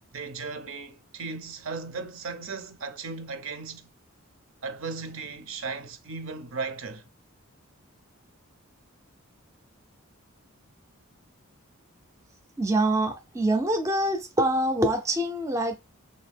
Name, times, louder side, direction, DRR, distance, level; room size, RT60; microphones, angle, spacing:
voice 1, 0.1-3.9 4.6-7.1, right 4 dB, 65° right, 0.6 m, -36 dB
voice 2, 12.6-15.8, right 1 dB, 15° right, 0.4 m, -25 dB
3.5 x 2.7 x 3.4 m
head